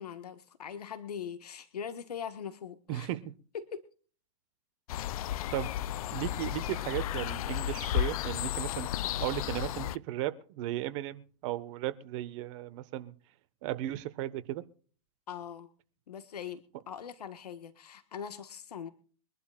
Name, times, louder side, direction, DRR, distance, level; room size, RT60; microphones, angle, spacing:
voice 1, 0.0-3.1 3.5-3.9 5.6-5.7 15.3-15.7 16.1-18.9, left 8 dB, 85° left, 10 dB, 1.5 m, -41 dB
voice 2, 2.9-3.3 5.5-5.7 6.1-13.1 13.6-14.6, right 14 dB, 50° right, 13 dB, 1.4 m, -36 dB
sound 1, 4.9-10.0, left 12 dB, 65° left, 0.6 m, -33 dB
24.0 x 11.5 x 2.5 m, 0.41 s
hypercardioid pair, 120°, 20 cm